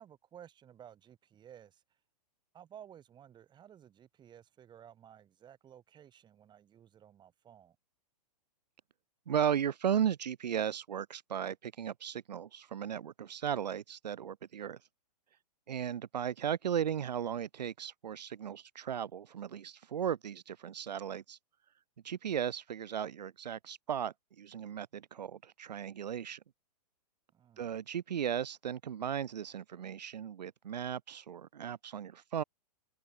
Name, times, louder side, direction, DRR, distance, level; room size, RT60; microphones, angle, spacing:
voice 1, 0.0-1.8 2.5-7.8 27.3-27.8, right 9 dB, 20° right, 4.8 m, -55 dB
voice 2, 9.3-14.8 15.7-21.4 22.0-26.4 27.6-32.4, right 9 dB, 80° right, 1.0 m, -36 dB
hypercardioid pair, 130°, 21 cm